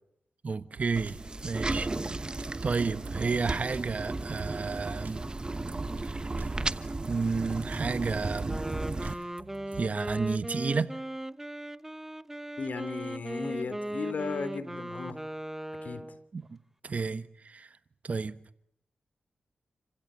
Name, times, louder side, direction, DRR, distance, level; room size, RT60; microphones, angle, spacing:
voice 1, 0.4-1.2 1.4-1.9 2.6-5.2 6.0-6.1 7.1-8.6 9.0-9.1 9.8-10.9 16.3-16.6 16.8-17.7 18.0-18.4, right 4 dB, 50° right, 1.2 m, -31 dB
sound 1, 0.8-10.4, right 5 dB, 75° right, 2.4 m, -48 dB
sound 2, 1.0-9.1, right 2 dB, 30° right, 1.1 m, -34 dB
Wind instrument woodwind instrument, 8.4-16.3, right 1 dB, 10° right, 0.9 m, -38 dB
voice 2, 12.6-15.2 15.8-16.0, left 4 dB, 65° left, 2.8 m, -35 dB
28.0 x 16.0 x 8.8 m
cardioid pair, 50°, 3 cm